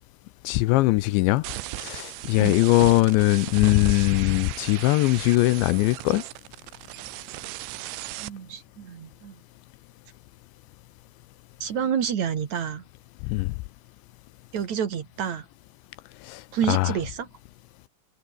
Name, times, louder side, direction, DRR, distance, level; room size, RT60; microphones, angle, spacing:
voice 1, 0.4-1.4 1.8-6.2 13.2-13.5 16.2-16.9, left 19 dB, 85° left, 2.7 m, -21 dB
sound 1, 1.4-8.3, right 19 dB, 75° right, 2.9 m, -37 dB
voice 2, 7.9-9.4 11.6-12.8 14.5-15.5 16.5-17.3, right 8 dB, 50° right, 2.4 m, -29 dB
omnidirectional pair, 5.7 m